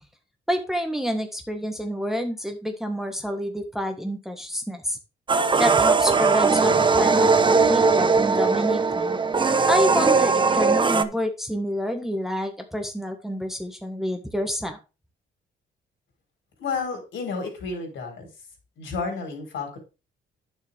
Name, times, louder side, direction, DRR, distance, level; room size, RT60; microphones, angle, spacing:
voice 1, 0.5-5.0 5.6-9.2 9.7-14.8, equal, ahead, 4 dB, 1.6 m, -28 dB
sound 1, 5.3-11.0, right 4 dB, 25° right, 0.8 m, -19 dB
voice 2, 16.6-18.3 18.8-19.8, left 4 dB, 75° left, 2 dB, 4.4 m, -31 dB
9.4 x 6.8 x 3.5 m, 0.29 s
cardioid pair, 90°, 20 cm